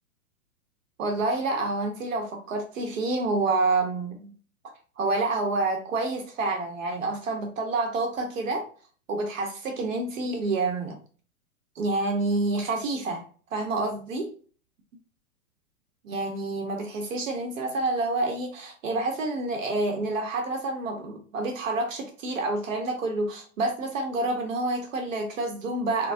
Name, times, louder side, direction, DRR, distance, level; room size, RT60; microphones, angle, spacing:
voice 1, 1.0-4.3 5.0-8.7 9.1-11.0 11.8-13.2 13.5-14.3 16.0-26.1, right 2 dB, 60° right, 0.8 m, -28 dB
3.8 x 2.0 x 2.6 m
figure-of-eight pair, 110°, 44 cm